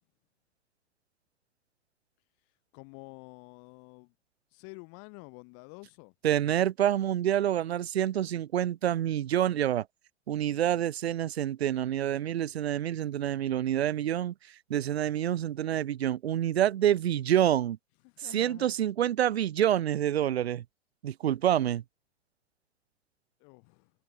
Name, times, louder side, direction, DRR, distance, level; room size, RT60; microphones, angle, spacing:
voice 1, 2.7-4.1 4.5-6.1 18.0-18.7 23.4-23.9, left 40 dB or more, 35° left, 2.8 m, -49 dB
voice 2, 6.2-9.9 10.3-14.3 14.7-17.8 18.2-20.6 21.0-21.8, right 11 dB, 55° right, 1.1 m, -27 dB
figure-of-eight pair, 105°, 37 cm